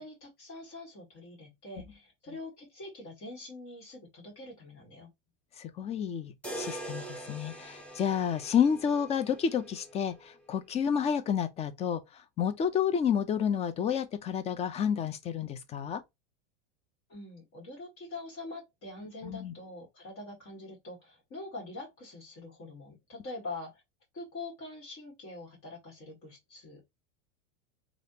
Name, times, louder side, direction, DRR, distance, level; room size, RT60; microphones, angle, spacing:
voice 1, 0.0-5.1 17.1-23.8 24.1-26.8, left 2 dB, 35° left, 1.7 m, -44 dB
voice 2, 5.6-12.0 12.4-16.0 19.2-19.5, left 8 dB, 20° left, 0.4 m, -30 dB
sound 1, 6.4-10.5, right 1 dB, 5° left, 0.9 m, -43 dB
3.3 x 2.5 x 2.7 m
supercardioid pair, 125°, 36 cm